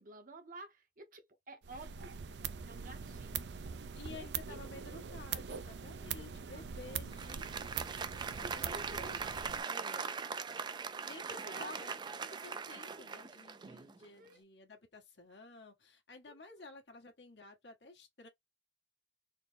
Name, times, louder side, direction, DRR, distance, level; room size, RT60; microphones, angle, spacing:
voice 1, 0.0-2.2 2.7-3.5 4.1-4.6 6.5-6.6 6.9-7.0 8.4-9.2 11.5-11.8 14.2-14.4 16.3-16.6, right 2 dB, 50° right, 1.0 m, -51 dB
sound 1, 1.6-9.6, right 7 dB, 80° right, 0.5 m, -43 dB
voice 2, 3.9-8.6 8.9-9.2 11.0-18.3, left 3 dB, 90° left, 1.5 m, -53 dB
Applause, 7.0-14.0, right 5 dB, 25° right, 0.3 m, -41 dB
4.3 x 2.2 x 3.4 m
head